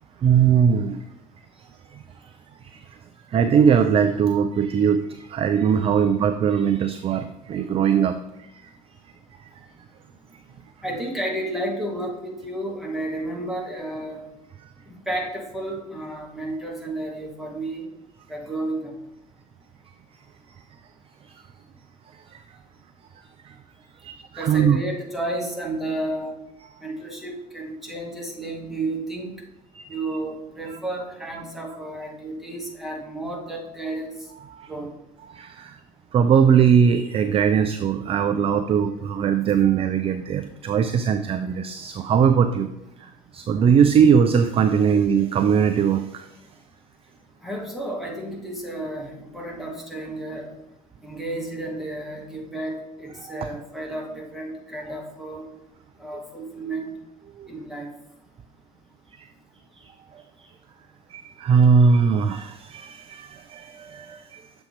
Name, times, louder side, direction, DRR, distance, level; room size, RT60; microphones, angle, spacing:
voice 1, 0.2-1.0 1.9-2.0 2.6-2.8 3.3-8.2 8.6-8.7 9.4-9.5 22.1-22.4 23.4-23.5 24.0-24.8 26.6-26.7 29.7-30.1 30.7-30.8 34.4-34.7 35.2-35.8 36.1-42.7 43.0-46.3 53.2-53.5 57.4-57.5 59.2-59.3 59.7-59.8 60.4-60.5 61.1-64.5, right 7 dB, 30° right, 9 dB, 0.4 m, -20 dB
voice 2, 10.8-14.2 14.9-17.9 18.3-18.9 24.4-26.3 26.8-29.3 29.9-34.1 34.7-34.9 47.4-50.5 51.0-55.5 56.0-56.9 57.5-57.9, right 1 dB, ahead, -2 dB, 1.8 m, -32 dB
6.9 x 3.5 x 4.4 m, 0.86 s
figure-of-eight pair, 65°, 21 cm